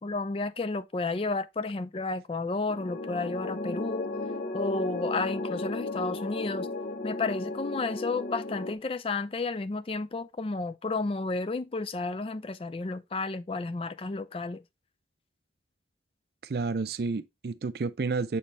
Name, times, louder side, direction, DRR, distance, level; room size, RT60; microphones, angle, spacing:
voice 1, 0.0-4.1 4.5-6.7 7.0-14.6, left 3 dB, 30° left, 0.4 m, -32 dB
sound 1, 2.7-8.7, left 2 dB, 50° left, 0.7 m, -34 dB
voice 2, 16.4-18.4, right 4 dB, 60° right, 0.4 m, -30 dB
7.1 x 4.2 x 3.3 m
head